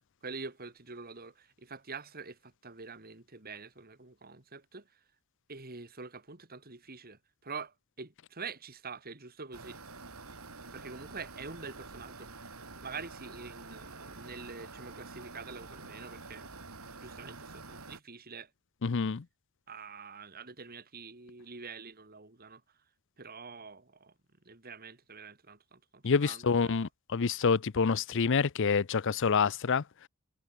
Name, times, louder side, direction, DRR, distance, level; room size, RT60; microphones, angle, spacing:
voice 1, 0.2-4.9 5.5-9.8 10.7-12.4 12.8-16.4 17.0-18.5 19.7-22.6 23.2-24.1 24.4-26.9, right 4 dB, 45° right, 2.7 m, -46 dB
sound 1, 9.5-18.0, right 3 dB, 80° right, 4.6 m, -48 dB
voice 2, 18.8-19.2 26.0-29.8, left 5 dB, 60° left, 0.6 m, -27 dB
head